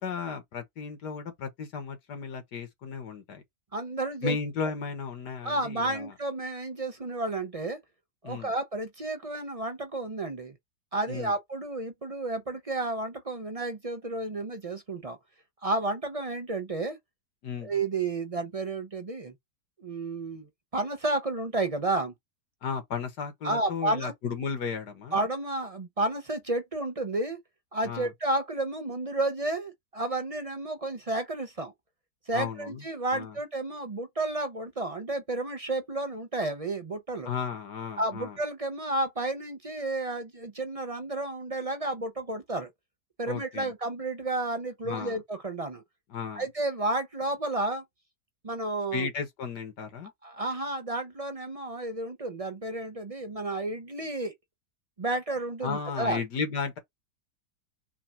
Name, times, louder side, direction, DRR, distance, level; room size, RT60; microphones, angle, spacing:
voice 1, 0.0-3.4 4.2-6.1 8.2-8.5 11.1-11.3 17.4-17.7 22.6-25.2 27.8-28.1 32.3-32.8 33.1-33.3 37.3-38.4 43.3-43.7 44.8-45.2 46.1-46.4 48.9-50.1 55.6-56.8, left 5 dB, 85° left, 2.0 m, -34 dB
voice 2, 3.7-4.4 5.4-7.8 8.2-10.5 10.9-15.2 15.6-17.0 17.6-19.3 19.8-20.5 20.7-22.1 23.4-24.1 25.1-27.4 27.7-31.7 32.3-37.3 38.0-42.7 43.2-45.8 46.3-47.8 48.4-49.1 50.2-54.3 55.0-56.2, right 2 dB, 40° right, 0.5 m, -31 dB
4.7 x 2.4 x 4.3 m
omnidirectional pair, 1.7 m